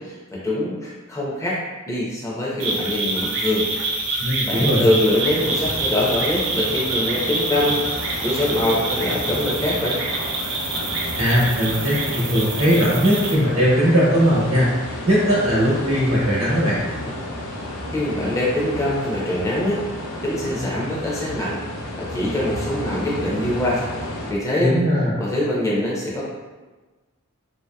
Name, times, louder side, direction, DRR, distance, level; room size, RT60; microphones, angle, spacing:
voice 1, 0.0-1.6 1.9-3.7 4.1-7.8 8.2-10.0 17.9-19.8 20.2-21.6 22.0-23.9 24.3-24.7 25.2-26.2, left 1 dB, 15° left, -5 dB, 0.6 m, -23 dB
sound 1, 2.6-13.4, right 3 dB, 60° right, 0.4 m, -26 dB
voice 2, 4.2-4.8 11.2-14.7 15.1-16.8 24.6-25.1, equal, 80° right, -9 dB, 1.0 m, -19 dB
sound 2, 5.0-24.3, left 1 dB, 85° left, 0.5 m, -32 dB
3.1 x 2.7 x 2.2 m, 1.2 s
head